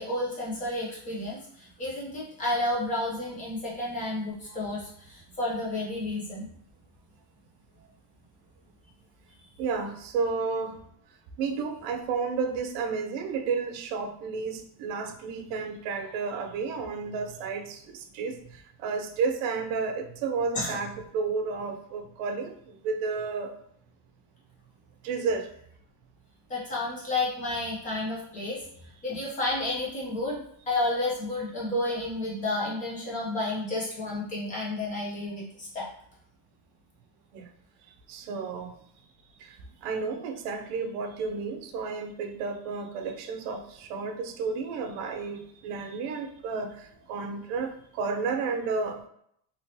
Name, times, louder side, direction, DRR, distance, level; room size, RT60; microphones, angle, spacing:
voice 1, 0.0-6.5 20.5-20.8 26.5-28.6 29.0-30.4 30.7-35.9, left 2 dB, 20° left, -5 dB, 0.4 m, -31 dB
voice 2, 9.6-10.7 11.4-17.8 18.1-18.4 18.8-22.5 22.8-23.5 25.0-25.5 37.3-37.5 38.1-38.7 39.8-46.7 47.1-49.1, right 5 dB, 70° right, 6 dB, 0.6 m, -31 dB
3.0 x 3.0 x 2.6 m, 0.69 s
cardioid pair, 180°, 50 cm